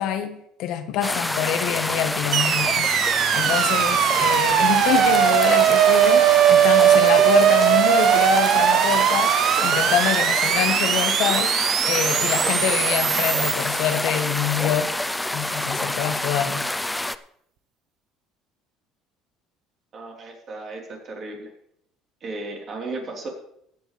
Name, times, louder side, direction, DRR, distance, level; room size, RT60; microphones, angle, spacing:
voice 1, 0.0-2.9 3.3-11.5 11.9-14.9 15.3-16.6, left 10 dB, 70° left, 8 dB, 1.3 m, -26 dB
sound 1, 1.0-17.2, left 1 dB, 5° left, 0.5 m, -27 dB
sound 2, 2.3-14.6, right 11 dB, 65° right, 0.9 m, -19 dB
voice 2, 19.9-21.5 22.2-23.3, right 2 dB, 40° right, -1 dB, 3.9 m, -35 dB
16.0 x 9.3 x 3.4 m, 0.71 s
cardioid pair, 120°, 0 cm